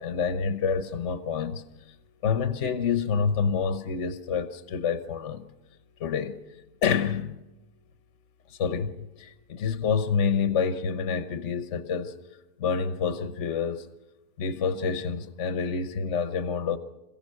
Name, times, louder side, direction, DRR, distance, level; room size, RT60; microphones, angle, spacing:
voice 1, 0.0-1.9 2.2-5.5 6.0-6.4 6.8-7.4 8.5-12.2 12.6-13.9 14.4-16.8, left 6 dB, 50° left, 1.1 m, -28 dB
27.0 x 16.0 x 6.5 m
omnidirectional pair, 1.8 m